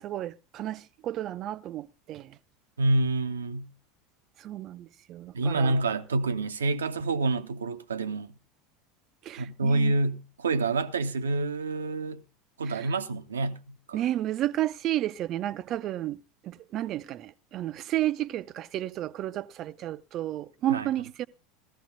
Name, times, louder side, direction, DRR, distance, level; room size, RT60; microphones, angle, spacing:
voice 1, 0.0-2.4 4.4-5.8 9.2-9.9 12.7-12.9 13.9-21.3, right 13 dB, 40° right, 0.6 m, -32 dB
voice 2, 2.8-3.7 5.3-8.3 9.4-12.2 12.6-14.0 20.7-20.9, right 2 dB, 75° right, 0.8 m, -27 dB
18.0 x 14.5 x 2.6 m
figure-of-eight pair, 75°, 0 cm